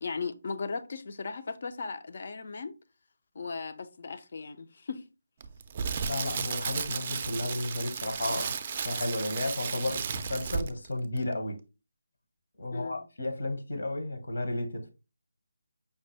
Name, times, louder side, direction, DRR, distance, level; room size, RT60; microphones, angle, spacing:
voice 1, 0.0-2.8 3.3-5.0 12.7-13.1, left 4 dB, 50° left, 0.5 m, -37 dB
Crackle, 5.4-10.9 11.2-11.3, right 6 dB, 30° right, 0.4 m, -34 dB
voice 2, 6.1-8.5 8.8-11.6 12.6-14.9, left 1 dB, 70° left, 1.2 m, -33 dB
5.3 x 2.2 x 3.3 m
figure-of-eight pair, 165°, 0 cm